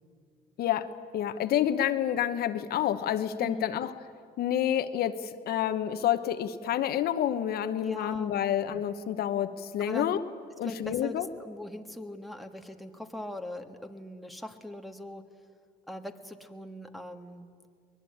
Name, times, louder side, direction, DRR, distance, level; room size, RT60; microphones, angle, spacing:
voice 1, 0.6-3.9 4.4-10.2 10.6-11.3, left 10 dB, 65° left, 10 dB, 1.1 m, -29 dB
voice 2, 3.4-3.8 7.8-8.4 9.8-10.2 10.6-15.2 15.9-17.5, left 1 dB, ahead, 4 dB, 1.5 m, -40 dB
23.5 x 20.5 x 8.7 m, 2.1 s
cardioid pair, 110°, 17 cm